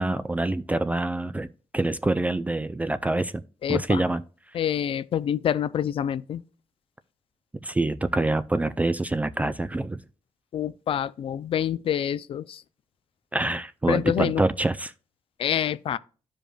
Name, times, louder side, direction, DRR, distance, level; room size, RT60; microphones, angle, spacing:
voice 1, 0.0-1.5 1.7-3.4 3.7-4.2 7.6-10.0 13.3-14.9, right 2 dB, 15° right, 0.3 m, -26 dB
voice 2, 3.6-4.0 4.5-6.4 10.5-12.6 13.9-14.4 15.4-16.0, left 10 dB, 60° left, 0.4 m, -27 dB
13.0 x 5.1 x 2.2 m
cardioid pair, 95°, 11 cm